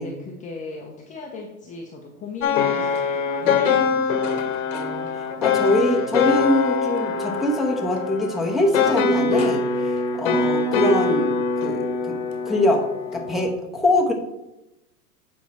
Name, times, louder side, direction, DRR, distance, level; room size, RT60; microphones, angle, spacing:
voice 1, 0.0-4.5, left 4 dB, 15° left, 0 dB, 0.8 m, -38 dB
sound 1, 2.4-13.5, left 5 dB, 50° left, 1.1 m, -23 dB
voice 2, 4.7-11.4 11.6-12.2 12.5-12.9 13.1-14.1, left 1 dB, ahead, -2 dB, 1.0 m, -23 dB
8.2 x 4.6 x 4.2 m, 0.91 s
hypercardioid pair, 120°, 47 cm